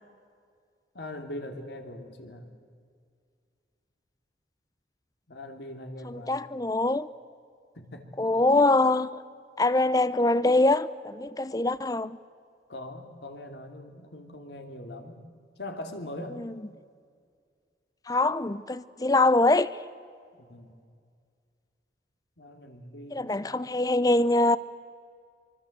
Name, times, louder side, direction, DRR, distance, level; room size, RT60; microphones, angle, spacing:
voice 1, 0.9-2.5 5.3-6.4 7.7-8.8 12.7-15.2 15.6-16.4 20.4-20.8 22.4-23.9, left 1 dB, 75° left, 2.9 m, -41 dB
voice 2, 6.0-7.1 8.2-9.1 9.6-12.2 16.4-16.5 18.1-19.7 23.1-24.6, left 2 dB, 20° left, 0.6 m, -23 dB
24.5 x 24.5 x 8.0 m
head